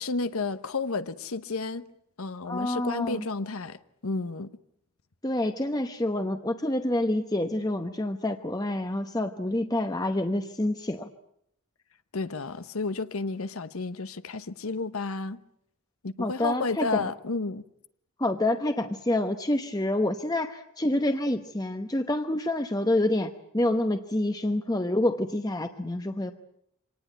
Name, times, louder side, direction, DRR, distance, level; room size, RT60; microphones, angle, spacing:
voice 1, 0.0-1.9 2.2-4.5 12.1-15.4 16.0-17.6, left 3 dB, 75° left, 1.0 m, -31 dB
voice 2, 2.5-3.3 5.2-11.1 16.2-17.1 18.2-26.3, left 1 dB, 15° left, 0.9 m, -27 dB
25.5 x 19.0 x 9.2 m
head